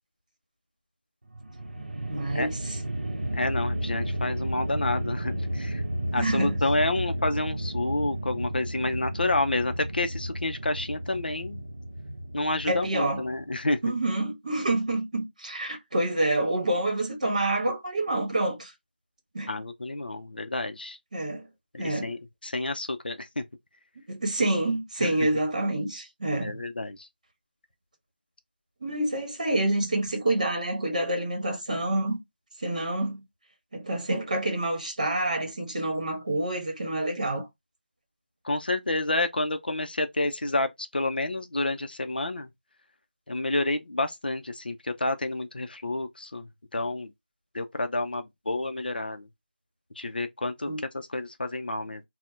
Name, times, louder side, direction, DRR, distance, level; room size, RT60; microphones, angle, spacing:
sound 1, 1.3-13.6, equal, 60° right, 0.6 m, -33 dB
voice 1, 2.1-2.8 6.2-6.6 12.7-13.2 13.8-18.7 19.3-19.5 21.1-21.5 21.8-22.1 24.1-26.6 28.8-32.2 32.6-33.2 33.7-37.5 50.7-50.8, right 1 dB, 40° right, 0.9 m, -27 dB
voice 2, 3.3-5.8 6.1-11.6 12.3-13.8 19.5-21.0 21.7-23.4 25.0-25.1 26.4-27.1 38.4-42.5 43.3-46.5 46.7-47.1 47.5-49.3 50.0-52.0, left 2 dB, 60° left, 0.4 m, -29 dB
2.6 x 2.0 x 3.2 m
figure-of-eight pair, 175°, 6 cm